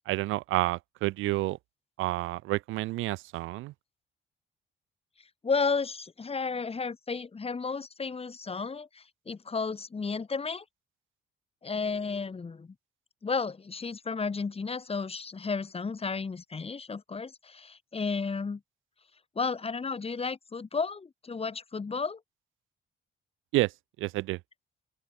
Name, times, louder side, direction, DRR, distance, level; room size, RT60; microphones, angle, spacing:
voice 1, 0.1-1.6 2.0-3.7 23.5-23.7 24.0-24.4, right 18 dB, 85° right, 0.5 m, -29 dB
voice 2, 5.4-10.6 11.6-12.7 13.2-18.6 19.4-22.2, left 4 dB, 30° left, 2.3 m, -33 dB
open air
cardioid pair, 90°, 20 cm